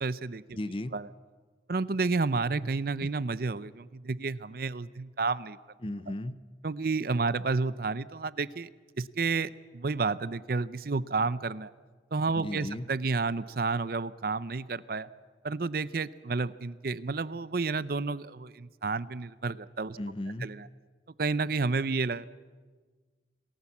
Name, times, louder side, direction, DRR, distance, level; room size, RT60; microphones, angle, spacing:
voice 1, 0.0-0.6 0.9-1.1 1.7-5.6 6.6-8.7 9.0-11.7 12.1-15.1 15.4-20.0 20.4-20.7 21.2-22.2, right 4 dB, 55° right, 17 dB, 0.6 m, -30 dB
voice 2, 0.5-0.9 5.8-6.4 12.4-12.9 20.0-20.5, left 1 dB, 30° left, 15 dB, 0.6 m, -35 dB
28.0 x 19.0 x 7.2 m, 1.5 s
head